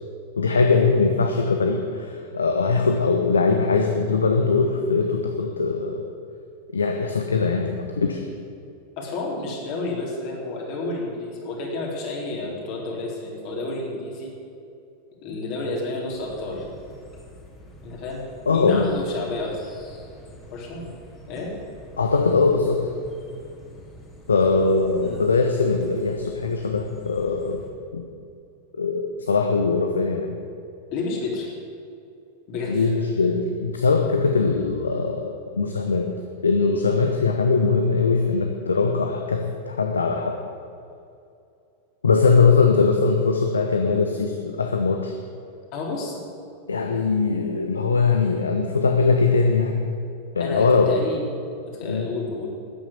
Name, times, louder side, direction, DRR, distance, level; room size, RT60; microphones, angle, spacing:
voice 1, 0.4-6.1 6.7-8.2 18.5-19.0 22.0-22.8 24.3-27.6 27.9-28.0 28.8-30.4 32.7-36.1 36.4-40.4 42.0-45.1 46.7-49.8 50.3-50.9 51.8-52.1, left 4 dB, 75° left, 4 dB, 1.0 m, -21 dB
voice 2, 9.0-14.3 15.2-16.7 17.8-18.2 18.5-19.7 20.5-20.9 21.3-21.5 25.0-25.2 30.9-31.5 32.5-32.9 45.7-46.2 50.3-51.2 51.6-52.5, left 2 dB, 45° left, -2 dB, 3.9 m, -30 dB
sound 1, 16.1-27.7, right 1 dB, 20° left, 2.9 m, -46 dB
13.0 x 9.3 x 8.2 m, 2.5 s
figure-of-eight pair, 90°, 0 cm